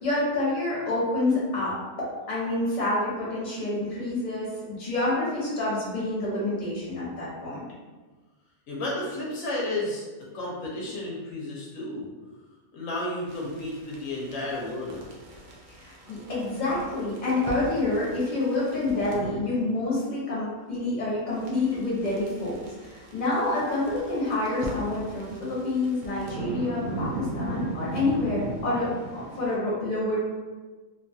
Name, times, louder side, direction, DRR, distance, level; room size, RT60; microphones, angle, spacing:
voice 1, 0.0-7.6 15.7-30.2, left 2 dB, 35° left, -7 dB, 1.0 m, -28 dB
voice 2, 8.7-10.0 10.3-12.1 12.7-15.1, left 1 dB, 80° left, -4 dB, 1.0 m, -32 dB
sound 1, 13.3-19.3 21.4-29.6, right 2 dB, 65° right, 0.4 m, -38 dB
2.8 x 2.3 x 2.6 m, 1.3 s
omnidirectional pair, 1.4 m